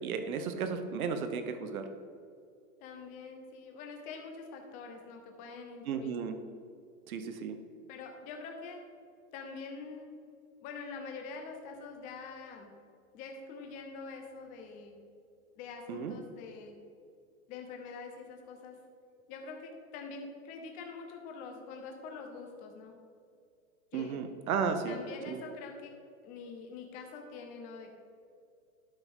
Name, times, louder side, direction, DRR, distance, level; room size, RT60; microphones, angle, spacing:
voice 1, 0.0-1.9 5.9-6.4 7.1-7.6 15.9-16.2 23.9-25.0 25.3-25.5, right 6 dB, 85° right, 8 dB, 0.9 m, -34 dB
voice 2, 2.8-6.2 7.9-8.8 9.3-10.1 10.6-12.7 13.1-15.0 15.6-16.8 17.5-18.8 19.3-23.0 23.9-24.2 24.9-25.9 26.2-27.9, left 4 dB, 20° left, 3 dB, 0.7 m, -45 dB
12.0 x 4.9 x 3.6 m, 2.4 s
supercardioid pair, 165°, 42 cm